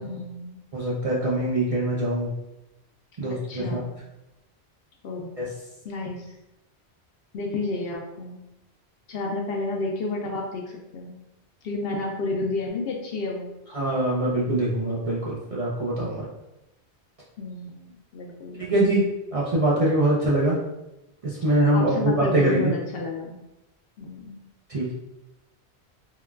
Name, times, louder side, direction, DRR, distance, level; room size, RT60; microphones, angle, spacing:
voice 1, 0.0-0.6 3.2-4.0 5.0-5.4 5.8-6.4 7.3-8.4 9.1-11.2 11.6-13.5 17.4-18.9 21.7-23.4 24.0-24.4, left 3 dB, 65° left, 0 dB, 0.7 m, -31 dB
voice 2, 0.7-2.3 3.2-3.8 5.4-5.5 13.7-16.3 18.6-20.6 21.2-22.7 24.7-24.9, right 1 dB, 45° right, -7 dB, 0.5 m, -23 dB
3.7 x 2.3 x 2.2 m, 0.92 s
omnidirectional pair, 1.1 m